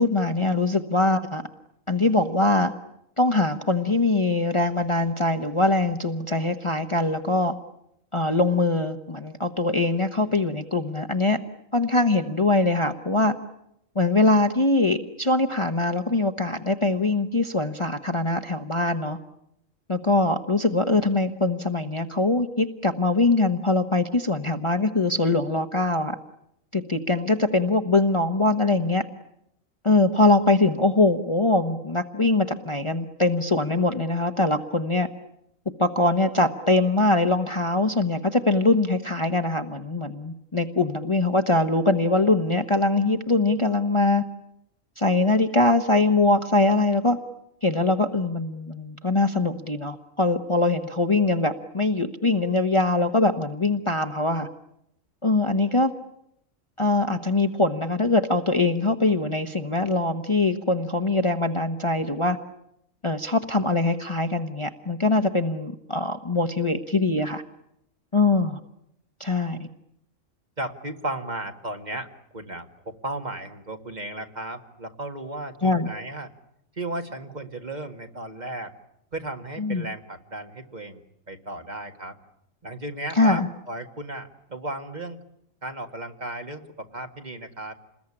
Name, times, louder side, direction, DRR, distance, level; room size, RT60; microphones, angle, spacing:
voice 1, 0.0-1.4 1.9-2.7 3.2-7.5 8.1-11.4 11.7-13.3 13.9-19.2 19.9-26.2 26.7-29.0 29.8-35.1 35.8-44.2 45.0-47.2 47.6-54.5 55.2-55.9 56.8-62.4 63.0-67.4 68.1-68.6 69.2-69.7 75.6-75.9 79.6-79.9 83.1-83.5, left 2 dB, 25° left, 6 dB, 1.1 m, -22 dB
voice 2, 70.6-76.3 76.8-78.7 79.1-81.0 81.3-82.2 82.6-85.2 85.6-87.8, right 2 dB, 35° right, 5 dB, 2.0 m, -35 dB
28.5 x 21.0 x 9.9 m, 0.79 s
omnidirectional pair, 1.3 m